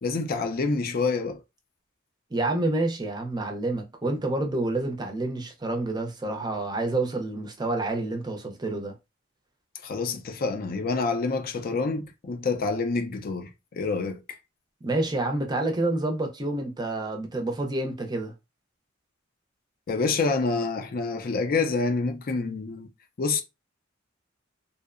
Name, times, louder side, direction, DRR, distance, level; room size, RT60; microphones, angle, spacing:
voice 1, 0.0-1.4 9.8-14.2 19.9-22.9 23.2-23.4, left 4 dB, 50° left, 0.4 m, -27 dB
voice 2, 2.3-9.0 14.8-18.3, right 2 dB, 20° right, 0.5 m, -28 dB
2.7 x 2.0 x 2.4 m
head